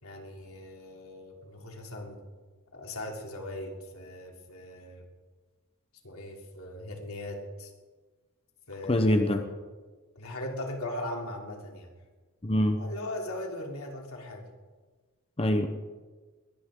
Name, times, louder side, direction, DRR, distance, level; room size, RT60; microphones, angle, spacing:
voice 1, 0.0-2.2 2.7-5.0 6.0-7.7 8.7-9.5 10.1-11.9 12.8-14.4, left 1 dB, 80° left, 1 dB, 3.1 m, -39 dB
voice 2, 8.9-9.4 12.4-12.8 15.4-15.7, left 1 dB, 25° left, 6 dB, 0.9 m, -24 dB
21.5 x 17.5 x 3.8 m, 1.4 s
head